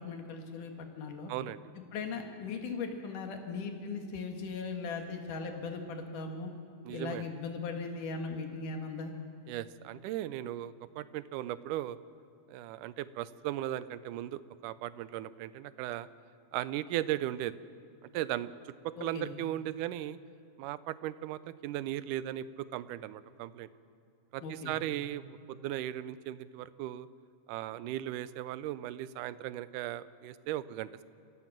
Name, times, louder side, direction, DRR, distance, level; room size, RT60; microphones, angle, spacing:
voice 1, 0.0-1.3 1.9-6.5 6.9-9.1 19.0-19.3 24.4-24.7, left 4 dB, 80° left, 3 dB, 3.4 m, -38 dB
voice 2, 1.3-1.6 6.8-7.3 9.5-12.0 12.5-16.1 16.5-17.5 18.0-20.2 20.6-23.7 24.3-27.1 27.5-31.0, right 13 dB, 85° right, 16 dB, 2.2 m, -37 dB
27.5 x 16.0 x 7.4 m, 2.6 s
omnidirectional pair, 3.6 m